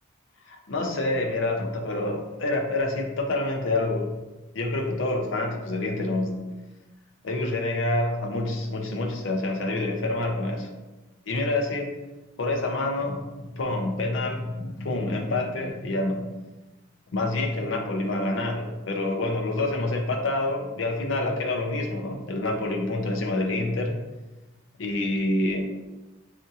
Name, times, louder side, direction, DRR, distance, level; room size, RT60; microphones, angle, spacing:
voice 1, 0.5-4.1 4.5-6.5 7.2-10.7 11.3-11.9 12.4-16.2 17.1-24.0 24.8-25.6, left 2 dB, 60° left, 2 dB, 0.5 m, -27 dB
4.3 x 2.7 x 2.4 m, 1.1 s
head